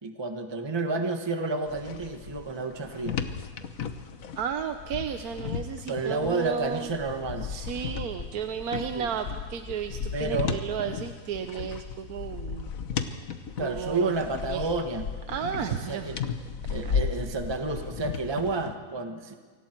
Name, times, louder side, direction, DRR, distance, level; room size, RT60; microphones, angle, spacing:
voice 1, 0.0-3.2 5.9-7.5 8.9-9.1 10.1-10.6 13.6-15.1 15.7-16.2 16.7-19.3, right 3 dB, 15° right, 5 dB, 1.3 m, -30 dB
sound 1, 1.7-18.7, left 6 dB, 50° left, 1.4 m, -35 dB
voice 2, 4.3-6.9 7.4-12.7 13.6-14.1 14.5-14.7 15.3-16.1, right 7 dB, 60° right, 7 dB, 1.2 m, -33 dB
29.0 x 24.5 x 4.6 m, 1.5 s
omnidirectional pair, 2.0 m